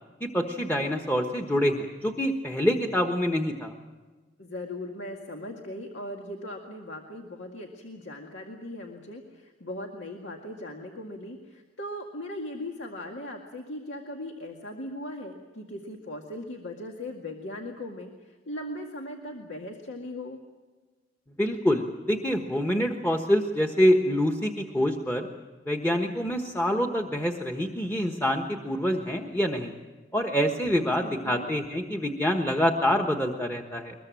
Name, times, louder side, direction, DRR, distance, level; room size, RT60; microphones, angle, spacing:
voice 1, 0.2-3.7 21.4-25.3 25.7-29.7 30.1-33.9, equal, 10° left, 3 dB, 1.3 m, -26 dB
voice 2, 4.4-20.4 31.0-31.5, left 1 dB, 75° left, 1 dB, 2.1 m, -39 dB
22.5 x 21.5 x 7.6 m, 1.3 s
head